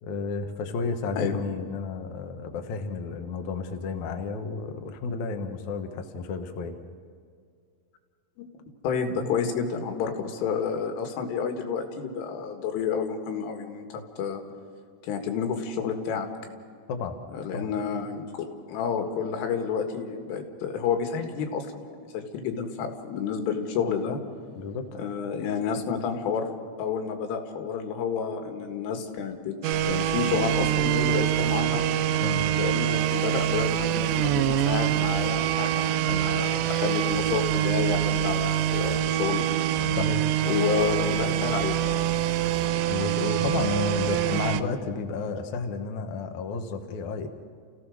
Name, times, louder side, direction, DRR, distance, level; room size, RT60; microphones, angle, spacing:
voice 1, 0.0-6.8 16.9-17.2 17.5-17.7 24.6-25.0 32.2-32.4 40.0-40.2 42.9-47.3, left 4 dB, 70° left, 5 dB, 1.8 m, -32 dB
voice 2, 8.8-14.4 15.0-16.3 17.3-24.2 25.0-26.5 26.8-29.6 29.9-31.8 32.6-39.5 40.5-42.2, left 6 dB, 85° left, 5 dB, 4.3 m, -30 dB
sound 1, 29.6-44.6, right 12 dB, 80° right, 2.5 m, -25 dB
sound 2, 29.7-44.5, right 3 dB, 20° right, 1.8 m, -36 dB
29.5 x 16.0 x 6.4 m, 2.2 s
omnidirectional pair, 5.5 m